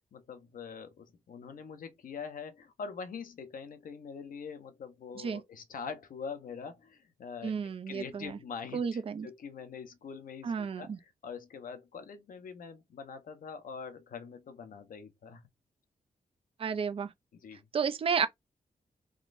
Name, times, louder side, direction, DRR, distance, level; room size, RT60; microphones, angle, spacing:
voice 1, 0.1-15.5 17.3-17.6, left 6 dB, 80° left, 0.8 m, -44 dB
voice 2, 7.4-8.3 8.7-9.3 10.4-11.0 16.6-17.1 17.7-18.3, right 6 dB, 40° right, 0.4 m, -32 dB
3.7 x 3.0 x 2.5 m
wide cardioid pair, 150°, 14 cm